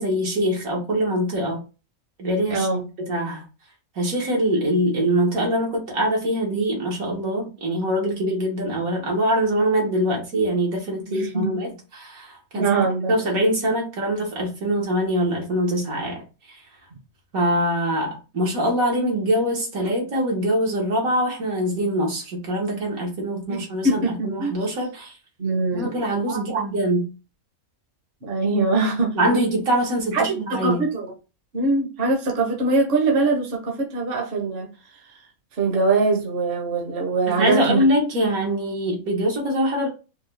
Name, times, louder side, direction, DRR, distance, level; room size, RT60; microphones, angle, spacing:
voice 1, 0.0-1.6 2.2-2.7 3.0-3.4 3.9-12.8 13.1-16.2 16.5-16.6 17.3-25.1 25.7-27.1 29.1-30.8 37.3-39.9, equal, 75° right, 1.7 m, -23 dB
voice 2, 2.5-2.8 11.0-11.6 12.5-13.4 23.5-24.5 25.4-25.9 26.3-26.6 28.2-29.1 30.1-31.1 31.5-34.7 35.6-37.8, right 3 dB, 45° right, 1.0 m, -23 dB
4.6 x 2.3 x 3.2 m
omnidirectional pair, 1.5 m